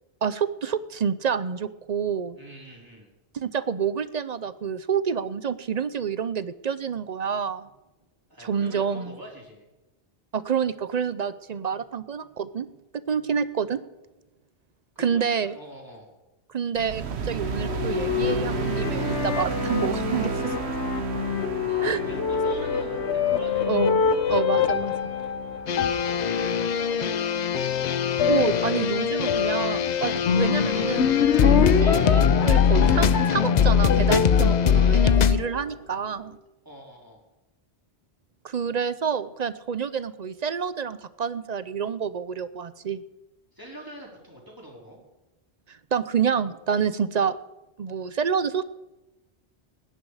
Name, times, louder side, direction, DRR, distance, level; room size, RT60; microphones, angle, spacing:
voice 1, 0.2-2.4 3.3-7.7 8.4-9.2 10.3-12.7 13.1-13.8 15.0-15.5 16.5-20.7 21.8-22.0 23.7-24.9 28.3-36.4 38.4-43.0 45.7-47.4 47.8-48.6, right 7 dB, 45° right, 15 dB, 0.6 m, -28 dB
voice 2, 2.4-3.1 8.3-9.7 14.9-16.1 21.7-23.8 26.0-27.2 36.6-37.2 43.5-45.0, equal, 20° right, -3 dB, 4.2 m, -43 dB
sound 1, 16.7-27.2, right 5 dB, 80° right, 1.2 m, -33 dB
sound 2, 17.3-35.9, left 7 dB, 90° left, 1.1 m, -27 dB
sound 3, 25.7-35.4, left 7 dB, 50° left, 0.6 m, -22 dB
17.5 x 10.5 x 4.9 m, 1.0 s
omnidirectional pair, 1.1 m